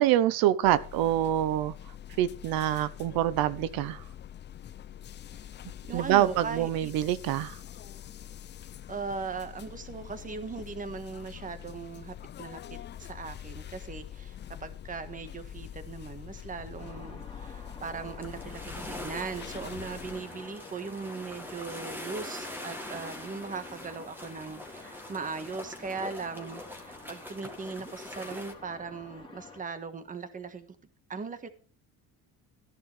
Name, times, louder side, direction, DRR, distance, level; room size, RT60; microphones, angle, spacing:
voice 1, 0.0-1.7 2.2-4.0 5.9-7.6, right 13 dB, 85° right, 15 dB, 0.9 m, -26 dB
sound 1, 0.6-20.2, left 10 dB, 30° left, 0.5 m, -45 dB
voice 2, 5.8-6.9 8.9-30.7 31.1-31.5, right 5 dB, 25° right, 10 dB, 1.5 m, -39 dB
sound 2, 16.8-29.6, left 4 dB, 15° left, 2.7 m, -48 dB
sound 3, 18.2-28.5, left 1 dB, 5° right, 2.0 m, -43 dB
14.5 x 10.5 x 3.3 m, 0.38 s
cardioid pair, 155°, 35 cm